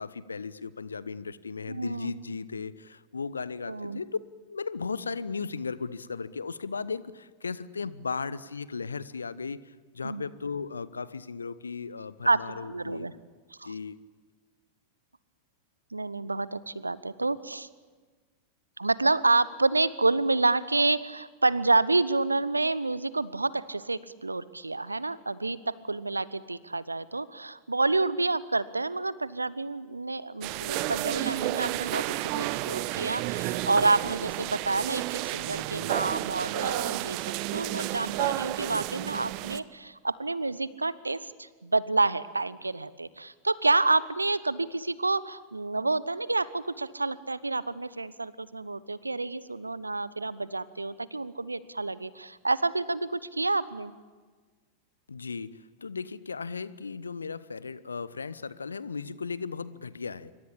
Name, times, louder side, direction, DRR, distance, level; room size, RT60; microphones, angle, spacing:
voice 1, 0.0-4.1 4.5-13.1 13.6-14.0 55.1-60.3, left 5 dB, 75° left, 18 dB, 1.0 m, -36 dB
voice 2, 1.7-2.1 3.7-4.0 10.0-10.2 12.3-13.1 13.6-13.7 15.9-17.7 18.8-37.2 37.5-53.9, right 3 dB, 80° right, 19 dB, 1.0 m, -28 dB
sound 1, 30.4-39.6, right 18 dB, 45° right, 1.0 m, -31 dB
26.5 x 24.0 x 8.7 m, 1.4 s
figure-of-eight pair, 90°, 0 cm